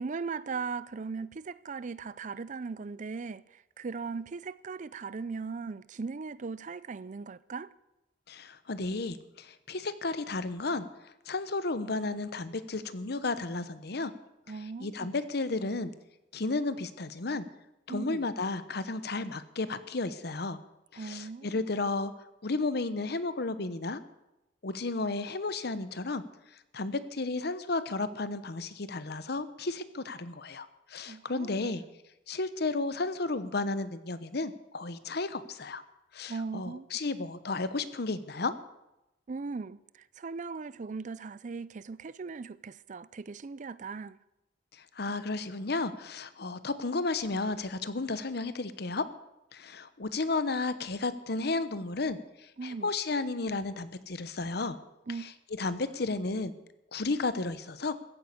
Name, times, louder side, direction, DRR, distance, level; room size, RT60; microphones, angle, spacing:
voice 1, 0.0-7.7 14.5-15.1 17.9-18.3 21.0-21.7 31.1-31.7 36.3-36.9 39.3-44.2 52.6-52.9 55.1-55.3, right 4 dB, 45° right, 0.4 m, -38 dB
voice 2, 8.3-14.1 14.8-15.9 16.3-17.5 17.9-20.6 20.9-22.1 22.4-24.0 24.6-26.2 26.7-31.8 32.3-35.8 36.1-38.5 44.8-49.0 49.5-54.8 55.2-55.3 55.6-56.5 56.9-57.9, left 3 dB, 60° left, 1.0 m, -33 dB
15.0 x 9.4 x 8.5 m
head